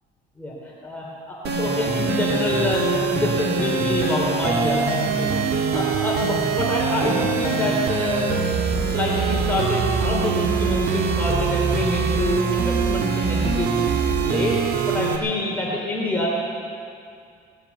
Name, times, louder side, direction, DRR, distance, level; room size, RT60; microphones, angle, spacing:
voice 1, 0.4-8.6 8.8-13.9 14.2-14.5 14.9-16.4, left 1 dB, 10° left, -5 dB, 3.2 m, -26 dB
sound 1, 1.4-15.2, right 5 dB, 75° right, 1.7 m, -23 dB
18.5 x 8.3 x 8.3 m, 2.4 s
cardioid pair, 110°, 17 cm